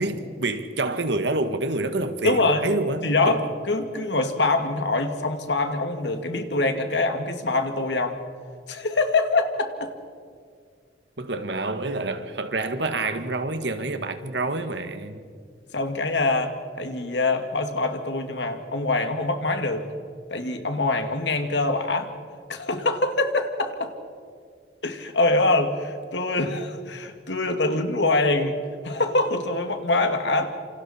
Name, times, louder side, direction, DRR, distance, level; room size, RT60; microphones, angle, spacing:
voice 1, 0.0-3.5 11.2-15.2, right 2 dB, 80° right, 1.7 m, -27 dB
voice 2, 2.2-2.7 3.0-3.4 3.7-8.2 8.7-9.9 15.7-16.5 16.8-19.9 20.3-22.1 22.5-23.9 24.8-28.6 28.8-30.5, left 2 dB, 90° left, 2.2 m, -24 dB
28.0 x 27.0 x 4.4 m
head